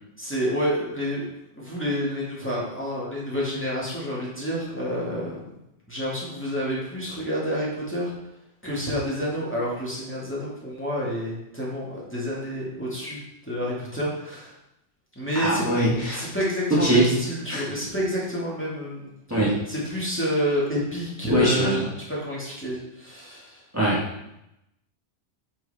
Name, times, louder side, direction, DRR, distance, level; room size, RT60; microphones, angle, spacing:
voice 1, 0.2-1.3 1.5-5.6 5.9-8.1 8.6-14.5 15.2-15.7 16.1-19.4 19.7-21.8 22.1-23.6, equal, 10° left, -7 dB, 2.2 m, -29 dB
voice 2, 15.3-16.2 16.7-17.1 17.5-17.7 19.3-19.5 21.3-21.8 23.7-24.0, right 1 dB, 15° right, -8 dB, 1.8 m, -21 dB
8.7 x 4.7 x 4.2 m, 0.85 s
omnidirectional pair, 1.2 m